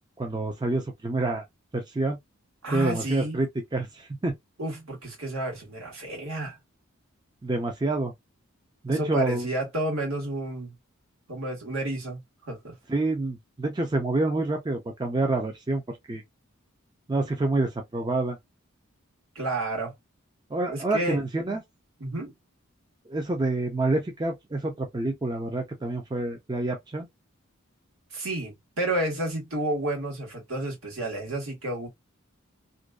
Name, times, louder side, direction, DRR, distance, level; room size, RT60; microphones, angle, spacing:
voice 1, 0.2-1.4 1.7-2.2 2.7-4.4 7.4-8.1 8.8-9.5 12.9-16.2 17.1-18.4 20.5-21.6 23.1-27.1, right 2 dB, 20° right, 0.4 m, -27 dB
voice 2, 2.6-3.4 4.6-6.6 8.9-10.8 11.3-12.7 19.3-19.9 20.7-21.2 22.0-22.3 28.1-31.9, right 1 dB, 75° right, 1.4 m, -31 dB
2.6 x 2.2 x 2.2 m
head